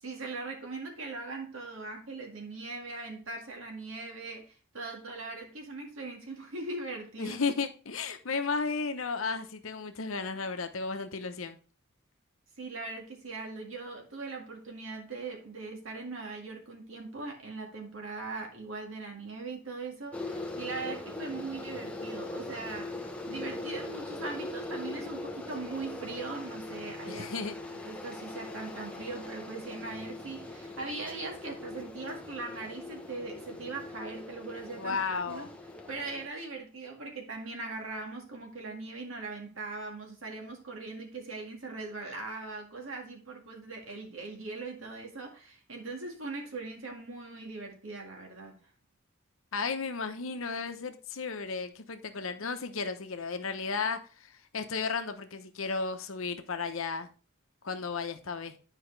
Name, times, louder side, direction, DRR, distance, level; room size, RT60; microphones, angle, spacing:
voice 1, 0.0-7.4 12.6-27.3 27.8-35.0 35.3-35.5 35.9-48.6, right 3 dB, 70° right, 1.9 m, -40 dB
voice 2, 7.2-11.6 27.1-27.6 34.8-35.5 49.5-57.1 57.6-58.6, left 4 dB, 75° left, 0.9 m, -34 dB
sound 1, 20.1-36.3, left 2 dB, 5° left, 0.8 m, -41 dB
10.0 x 4.9 x 3.3 m
head